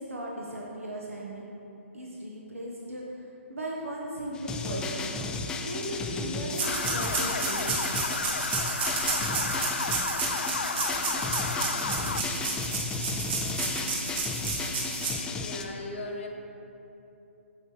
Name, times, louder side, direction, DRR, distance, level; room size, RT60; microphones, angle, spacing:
voice 1, 0.0-1.4 1.9-5.1 5.6-8.0, right 1 dB, 90° right, -3 dB, 1.0 m, -37 dB
sound 1, 4.3-15.6, left 4 dB, 10° left, 0.3 m, -34 dB
sound 2, 6.5-15.1, right 4 dB, 50° right, 1.6 m, -32 dB
sound 3, 6.6-12.2, left 4 dB, 80° left, 0.4 m, -33 dB
voice 2, 15.3-16.3, left 2 dB, 60° left, 1 dB, 0.9 m, -38 dB
8.4 x 6.8 x 3.1 m, 2.9 s
figure-of-eight pair, 140°, 7 cm